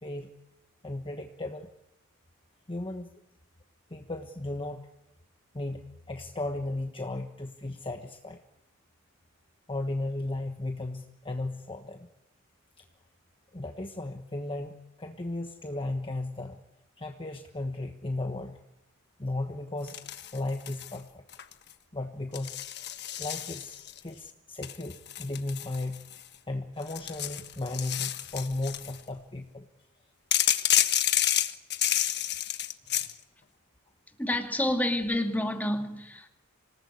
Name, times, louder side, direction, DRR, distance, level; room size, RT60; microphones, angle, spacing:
voice 1, 0.0-0.3 0.8-1.7 2.7-3.1 3.9-4.9 5.5-8.4 9.7-12.1 13.5-16.6 17.0-18.6 19.2-20.0 20.3-21.2 21.9-22.6 23.2-26.1 26.5-29.6, left 2 dB, 25° left, 1.3 m, -35 dB
sound 1, 19.9-21.0 21.3-21.7 22.3-24.0 24.6-26.3 26.8-29.0 30.3-33.1, left 11 dB, 50° left, 1.4 m, -29 dB
voice 2, 34.2-36.3, left 1 dB, 10° left, 2.5 m, -29 dB
26.0 x 19.0 x 9.9 m
head